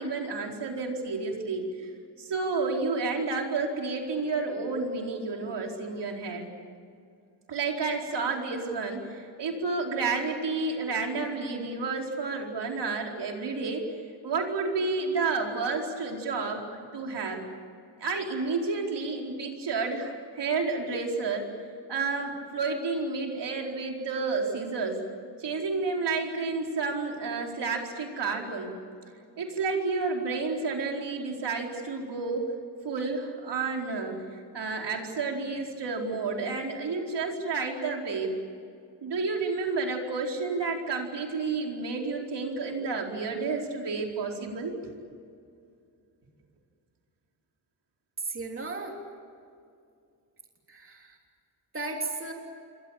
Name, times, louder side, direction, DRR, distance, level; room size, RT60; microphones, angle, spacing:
voice 1, 0.0-1.9 2.2-6.5 7.5-13.8 14.2-16.6 16.9-17.4 18.0-21.4 21.9-25.0 25.4-28.7 29.4-32.5 32.8-34.2 34.5-38.4 39.0-44.8, right 4 dB, 75° right, 1 dB, 4.6 m, -30 dB
voice 2, 48.2-49.0 50.7-51.2 51.7-52.3, right 3 dB, 30° right, 1 dB, 3.3 m, -35 dB
28.5 x 24.0 x 7.4 m, 2.4 s
wide cardioid pair, 175°, 42 cm